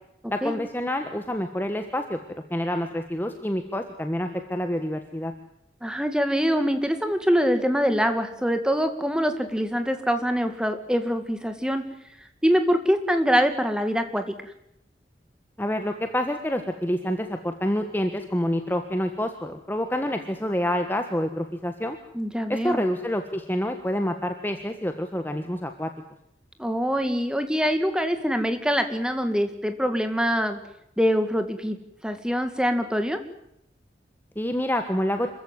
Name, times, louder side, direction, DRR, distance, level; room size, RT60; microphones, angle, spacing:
voice 1, 0.3-2.2 2.5-5.3 15.6-22.0 22.5-25.9 34.3-35.3, equal, 10° left, 6 dB, 1.4 m, -27 dB
voice 2, 5.8-11.8 12.4-14.3 22.1-22.8 26.6-30.6 31.0-31.8 32.0-33.2, equal, 5° right, 8 dB, 2.1 m, -24 dB
26.5 x 15.0 x 9.5 m, 0.79 s
head